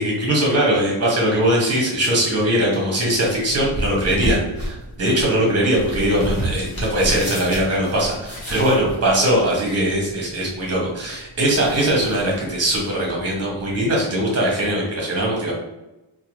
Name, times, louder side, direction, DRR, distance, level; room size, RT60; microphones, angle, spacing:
voice 1, 0.0-15.5, right 1 dB, 30° right, -2 dB, 0.8 m, -20 dB
sound 1, 3.0-14.0, equal, 35° left, 0.9 m, -32 dB
2.7 x 2.2 x 2.9 m, 0.98 s
wide cardioid pair, 175°, 48 cm